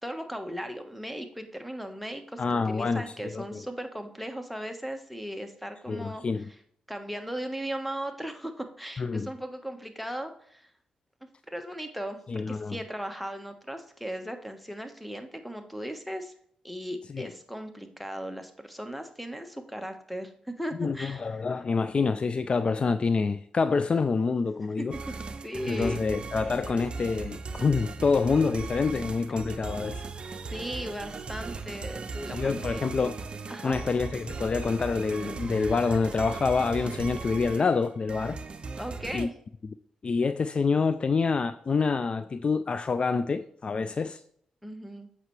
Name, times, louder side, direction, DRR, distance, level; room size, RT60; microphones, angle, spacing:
voice 1, 0.0-6.2 6.9-10.7 11.5-16.3 16.6-21.4 24.8-25.1 25.4-26.0 30.5-32.9 33.5-33.8 38.8-39.3 44.6-45.1, equal, ahead, 1.2 m, -37 dB
voice 2, 2.4-3.0 3.3-3.6 5.9-6.5 9.0-9.3 12.3-12.8 17.1-17.3 20.8-25.0 25.7-30.0 32.3-33.2 33.6-38.4 39.1-39.3 40.0-44.2, left 4 dB, 45° left, 0.4 m, -27 dB
sound 1, 24.9-39.3, right 4 dB, 45° right, 0.7 m, -38 dB
7.9 x 5.6 x 3.2 m
cardioid pair, 60°, 2 cm